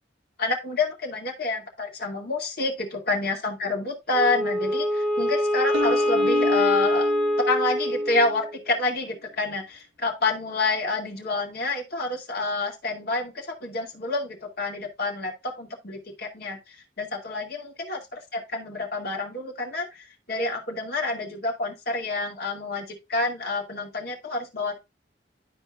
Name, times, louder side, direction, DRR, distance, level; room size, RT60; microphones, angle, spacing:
voice 1, 0.4-7.1 7.4-24.8, left 3 dB, 60° left, 2.3 m, -28 dB
Wind instrument woodwind instrument, 4.1-8.6, equal, ahead, 1.5 m, -24 dB
sound 1, 5.7-8.4, left 2 dB, 80° right, 1.1 m, -31 dB
12.0 x 4.5 x 2.3 m
head